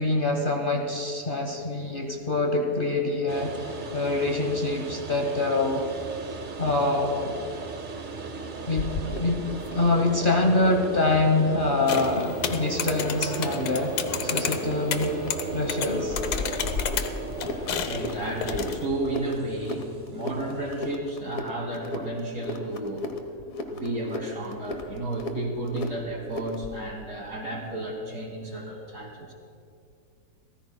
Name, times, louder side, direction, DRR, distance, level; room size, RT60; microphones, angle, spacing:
voice 1, 0.0-5.8 6.6-7.4 8.7-8.9 9.2-9.5 9.7-13.9 14.2-15.1 15.5-16.2, left 2 dB, 35° left, 2 dB, 1.1 m, -25 dB
sound 1, 3.3-20.9, right 4 dB, 45° right, 0.6 m, -36 dB
sound 2, 8.8-26.8, left 2 dB, 60° left, 1.4 m, -37 dB
sound 3, 11.9-18.9, left 7 dB, 75° left, 1.4 m, -32 dB
voice 2, 17.8-23.1 23.6-29.3, right 1 dB, 70° right, 0 dB, 3.0 m, -32 dB
30.0 x 14.5 x 2.2 m, 2.4 s
omnidirectional pair, 1.7 m